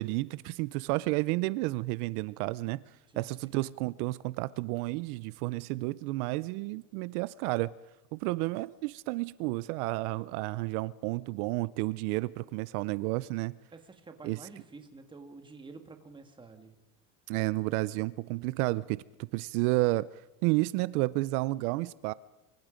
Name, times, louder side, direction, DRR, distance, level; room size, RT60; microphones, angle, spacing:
voice 1, 0.0-2.8 3.2-7.7 8.1-13.5 14.2-14.5 17.3-22.1, right 21 dB, 70° right, 0.7 m, -31 dB
voice 2, 3.1-3.5 13.7-16.7, right 3 dB, 10° right, 1.7 m, -49 dB
25.5 x 24.0 x 5.1 m
cardioid pair, 170°, 46 cm